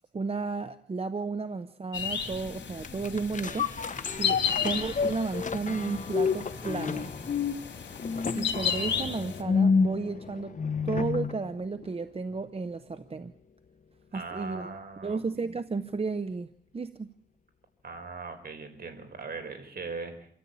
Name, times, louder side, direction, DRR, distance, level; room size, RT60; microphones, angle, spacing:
voice 1, 0.1-3.7 4.2-7.1 8.3-13.3 14.1-14.7 15.0-16.5 16.7-17.1, right 4 dB, 35° right, 12 dB, 0.8 m, -33 dB
sound 1, 1.9-9.4, left 7 dB, 90° left, 3.2 m, -34 dB
sound 2, 2.8-11.4 11.8-11.9, left 5 dB, 45° left, 1.1 m, -30 dB
voice 2, 4.3-4.7 14.1-15.2 17.8-20.3, right 4 dB, 60° right, 7 dB, 4.4 m, -40 dB
26.5 x 13.5 x 8.6 m, 0.67 s
wide cardioid pair, 115°, 18 cm